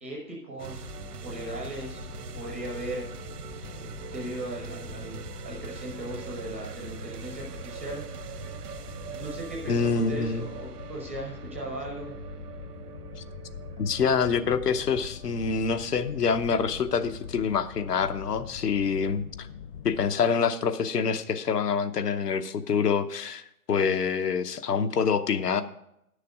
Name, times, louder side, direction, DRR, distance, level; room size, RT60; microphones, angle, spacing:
voice 1, 0.0-1.0 1.2-2.1 2.3-3.1 4.1-8.0 9.1-12.1, right 1 dB, 10° right, -1 dB, 0.4 m, -38 dB
sound 1, 0.6-18.2, right 8 dB, 75° right, 0.8 m, -43 dB
sound 2, 0.7-20.2, left 8 dB, 35° left, 0.7 m, -43 dB
voice 2, 9.7-10.5 13.8-19.5 19.8-25.6, left 6 dB, 80° left, 10 dB, 1.0 m, -26 dB
10.5 x 6.7 x 4.9 m, 0.80 s
figure-of-eight pair, 135°, 47 cm